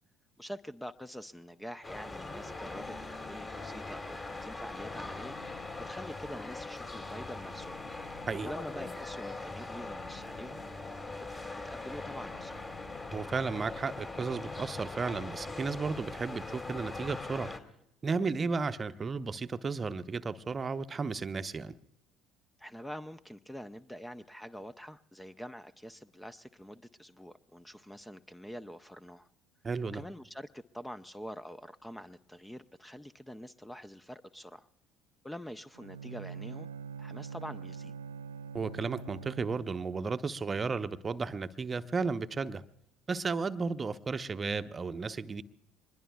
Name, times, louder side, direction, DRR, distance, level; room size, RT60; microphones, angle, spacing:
voice 1, 0.4-5.4 5.9-7.8 8.4-10.6 11.3-12.6 22.6-29.3 29.9-34.7 35.2-36.7 37.0-37.9, equal, 5° left, 12 dB, 0.6 m, -45 dB
sound 1, 1.8-17.6, left 3 dB, 30° left, 2.4 m, -41 dB
voice 2, 13.1-17.5 18.0-21.8 29.6-30.0 38.5-42.6 43.1-45.4, right 4 dB, 30° right, 10 dB, 0.8 m, -34 dB
Bowed string instrument, 35.7-39.8, right 6 dB, 85° right, 0.5 m, -44 dB
24.0 x 21.5 x 2.3 m, 0.79 s
figure-of-eight pair, 55°, 0 cm